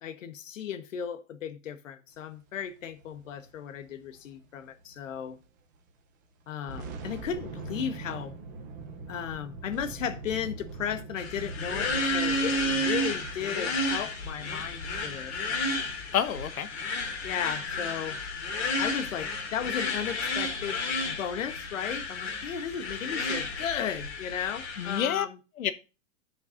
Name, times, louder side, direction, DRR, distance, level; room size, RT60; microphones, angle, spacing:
voice 1, 0.0-5.4 6.5-8.3 9.1-15.4 17.2-18.2 18.8-25.4, left 8 dB, 70° left, 1.2 m, -35 dB
sound 1, 2.6-5.4 5.7-5.9 6.4-21.2, right 3 dB, 15° right, 0.6 m, -45 dB
sound 2, 11.2-25.0, left 2 dB, 50° left, 2.4 m, -32 dB
voice 2, 16.1-16.7 24.8-25.3 25.6-25.7, left 9 dB, 90° left, 1.1 m, -28 dB
15.0 x 5.8 x 2.5 m
hypercardioid pair, 175°, 40 cm